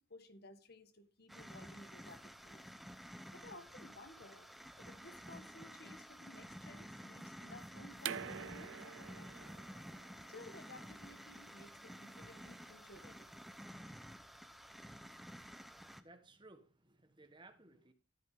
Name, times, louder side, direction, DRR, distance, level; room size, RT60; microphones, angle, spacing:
voice 1, 0.0-2.7 3.3-4.5 4.8-9.5 10.3-13.3, left 2 dB, 50° left, 1.8 m, -57 dB
sound 1, 1.3-16.0, equal, ahead, 0.9 m, -52 dB
sound 2, 8.0-13.6, right 8 dB, 70° right, 0.6 m, -48 dB
voice 2, 15.6-17.9, right 2 dB, 25° right, 1.5 m, -61 dB
14.0 x 9.2 x 3.8 m
head